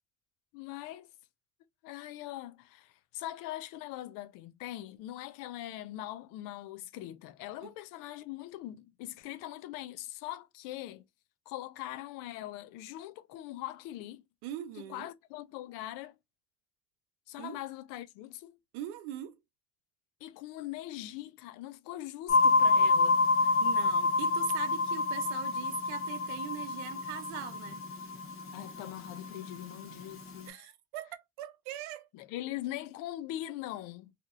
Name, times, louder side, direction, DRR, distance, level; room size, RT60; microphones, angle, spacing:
voice 1, 0.5-1.1 1.8-11.0 11.5-14.2 14.8-16.2 17.3-18.6 20.2-23.5 28.5-30.5 32.1-34.1, left 14 dB, 80° left, 0.6 m, -42 dB
voice 2, 14.4-15.1 17.4-17.6 18.7-19.4 23.6-27.8 30.5-32.1, right 12 dB, 90° right, 0.6 m, -41 dB
sound 1, 22.3-30.5, left 3 dB, 40° left, 1.3 m, -29 dB
2.8 x 2.5 x 2.3 m
supercardioid pair, 90°, 33 cm